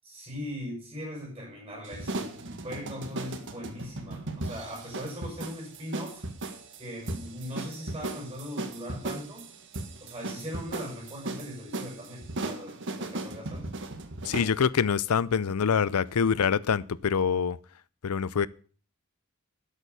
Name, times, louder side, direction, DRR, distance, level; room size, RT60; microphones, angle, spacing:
voice 1, 0.0-6.3 6.8-9.5 10.0-13.7, equal, 20° right, 6.2 m, -40 dB
sound 1, 1.8-14.6, right 2 dB, 60° right, 1.8 m, -37 dB
voice 2, 14.2-17.6 18.0-18.5, left 6 dB, 90° left, 0.5 m, -25 dB
12.0 x 8.4 x 6.9 m
head